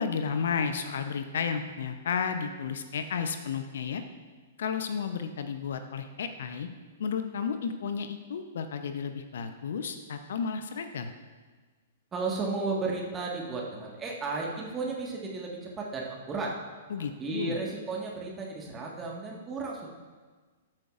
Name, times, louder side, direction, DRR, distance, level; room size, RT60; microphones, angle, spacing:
voice 1, 0.0-4.0 4.6-6.7 7.0-11.1 16.9-17.6, left 6 dB, 60° left, 8 dB, 0.8 m, -32 dB
voice 2, 12.1-16.6 17.0-19.9, right 3 dB, 20° right, -2 dB, 1.6 m, -34 dB
14.0 x 8.8 x 2.5 m, 1.4 s
figure-of-eight pair, 110°, 0 cm